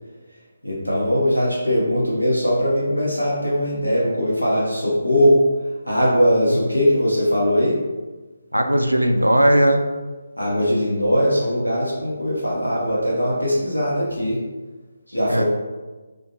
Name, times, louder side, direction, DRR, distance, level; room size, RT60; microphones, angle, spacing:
voice 1, 0.6-5.5 5.8-7.8 10.4-14.4 15.1-15.4, equal, 85° left, -6 dB, 0.9 m, -20 dB
voice 2, 8.5-9.8 15.3-15.4, right 1 dB, 85° right, 5 dB, 0.3 m, -17 dB
2.5 x 2.4 x 2.7 m, 1.3 s
figure-of-eight pair, 150°, 0 cm